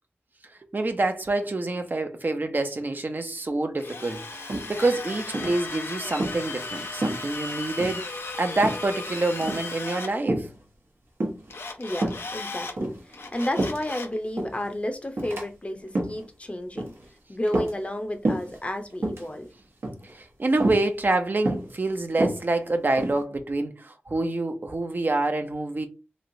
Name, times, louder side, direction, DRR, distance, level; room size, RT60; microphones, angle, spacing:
voice 1, 0.7-10.5 20.0-25.9, right 2 dB, 50° right, 0.5 m, -27 dB
Drill, 3.8-10.1 11.5-12.8 13.1-14.2, left 3 dB, 80° left, 0.5 m, -36 dB
sound 1, 4.5-5.0 5.3-5.6 6.1-6.4 7.0-7.5 7.8-8.0 8.6-9.0 9.3-9.7 10.3-10.6 11.2-11.6 12.0-12.3 12.7-14.0 14.4-14.7 15.2-15.4 15.8-16.2 16.8-17.1 17.5-18.0 18.2-18.6 18.9-19.3 19.8-20.1 20.6-20.9 21.5-21.7 22.1-23.2, right 1 dB, 80° right, 0.9 m, -28 dB
voice 2, 11.8-16.9 17.3-19.5, left 1 dB, 30° left, 0.6 m, -32 dB
3.1 x 2.8 x 2.6 m
wide cardioid pair, 50°, 4 cm